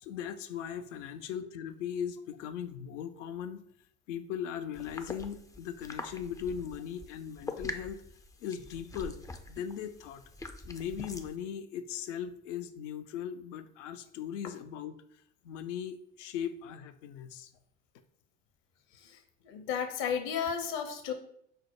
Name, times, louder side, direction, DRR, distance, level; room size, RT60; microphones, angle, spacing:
voice 1, 0.0-3.6 4.1-8.0 8.4-9.2 9.5-10.2 10.6-14.9 15.4-17.5, left 8 dB, 75° left, 9 dB, 0.5 m, -38 dB
sound 1, 4.8-11.3, left 2 dB, 10° left, 0.3 m, -44 dB
voice 2, 19.4-21.1, left 7 dB, 60° left, 6 dB, 0.9 m, -33 dB
5.3 x 2.1 x 4.5 m, 0.68 s
hypercardioid pair, 65°, 36 cm